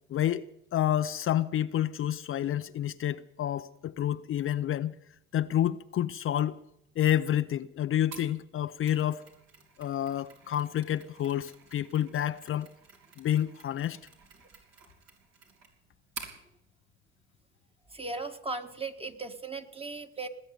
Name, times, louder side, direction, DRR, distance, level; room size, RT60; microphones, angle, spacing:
voice 1, 0.1-0.4 0.7-4.9 5.3-6.6 7.0-9.2 9.8-12.7 13.2-14.0, left 11 dB, 45° left, 0.6 m, -29 dB
Mechanisms, 8.1-16.4, right 5 dB, 60° right, 3.9 m, -50 dB
voice 2, 17.9-20.3, right 3 dB, 20° right, 1.7 m, -37 dB
19.5 x 8.0 x 9.4 m
supercardioid pair, 75°, 29 cm